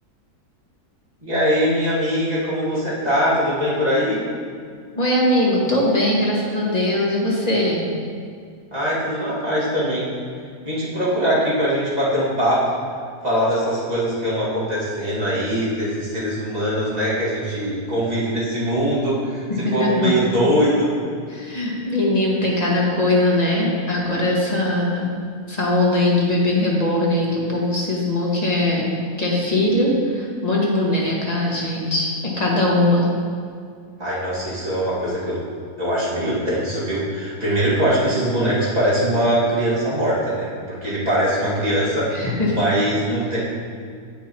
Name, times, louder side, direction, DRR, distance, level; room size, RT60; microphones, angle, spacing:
voice 1, 1.2-4.2 8.7-10.0 10.6-12.7 13.2-20.9 34.0-35.4 35.8-43.4, equal, 25° right, -9 dB, 2.2 m, -22 dB
voice 2, 5.0-7.8 19.6-20.1 21.3-25.1 25.5-28.9 29.2-33.1 42.1-42.6, left 1 dB, 25° left, -4 dB, 1.4 m, -20 dB
8.2 x 6.2 x 4.4 m, 2.2 s
omnidirectional pair, 1.7 m